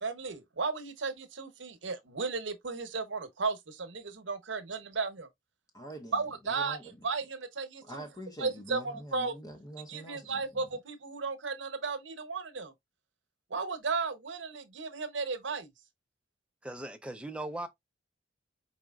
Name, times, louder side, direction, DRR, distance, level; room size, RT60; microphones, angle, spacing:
voice 1, 0.0-5.3 6.1-6.8 7.0-8.0 8.4-9.4 9.9-12.7 13.5-15.7, right 4 dB, 75° right, 1.0 m, -34 dB
voice 2, 5.7-6.2 6.4-7.1 7.8-10.7, right 1 dB, 20° left, 0.9 m, -45 dB
voice 3, 16.6-17.7, right 1 dB, 5° right, 0.6 m, -38 dB
4.8 x 4.3 x 2.4 m
head